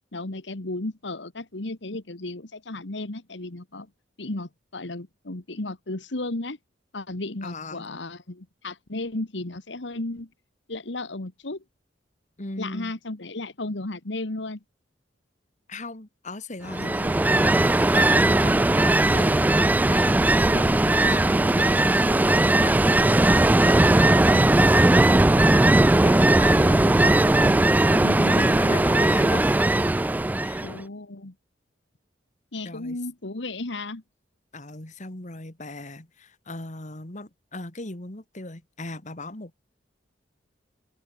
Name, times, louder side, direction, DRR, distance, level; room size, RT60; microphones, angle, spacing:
voice 1, 0.1-3.9 4.2-6.6 6.9-10.3 10.7-11.6 12.6-14.6 27.9-28.4 30.6-31.3 32.5-34.0, left 2 dB, 80° left, 1.7 m, -34 dB
voice 2, 7.4-7.9 12.4-12.9 15.7-20.2 20.5-23.1 23.3-25.7 26.0-29.5 30.3-30.7 32.6-33.0 34.5-39.7, left 2 dB, 40° left, 2.5 m, -38 dB
Ocean, 16.7-30.8, right 1 dB, 10° right, 0.3 m, -19 dB
open air
head